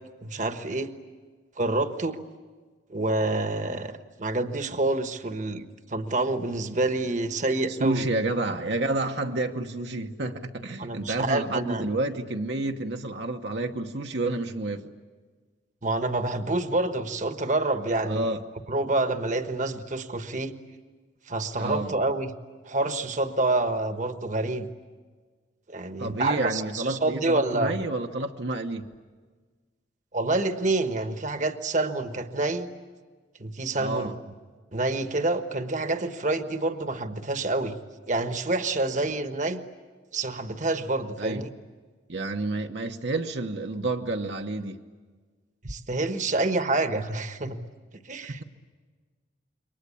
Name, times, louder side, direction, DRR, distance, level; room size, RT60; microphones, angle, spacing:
voice 1, 0.2-0.9 1.6-2.2 2.9-8.0 10.8-11.9 15.8-18.3 18.7-20.5 21.3-22.3 22.6-24.7 25.7-27.8 30.1-32.7 33.4-34.1 34.7-37.8 38.1-39.6 40.1-41.5 45.6-47.6 48.0-48.4, right 2 dB, 40° right, 1.2 m, -27 dB
voice 2, 7.7-14.8 18.0-18.4 21.6-22.0 26.0-28.9 33.8-34.2 39.0-39.1 41.2-41.5 42.1-44.8 48.2-48.4, right 2 dB, 65° right, 1.1 m, -30 dB
28.0 x 23.5 x 8.5 m
head